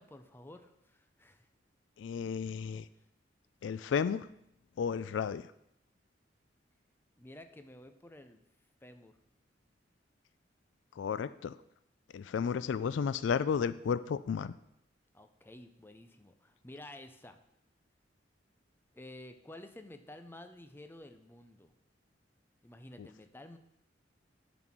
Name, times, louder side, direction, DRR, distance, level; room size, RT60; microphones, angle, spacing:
voice 1, 0.0-1.5 7.2-8.4 8.8-9.2 15.1-17.4 18.9-21.7 22.6-23.6, left 1 dB, 10° left, 8 dB, 0.6 m, -51 dB
voice 2, 2.0-2.9 3.6-4.3 4.8-5.4 11.0-11.6 12.1-14.5 23.0-23.1, left 6 dB, 75° left, 15 dB, 0.3 m, -33 dB
11.0 x 4.1 x 6.0 m, 0.78 s
head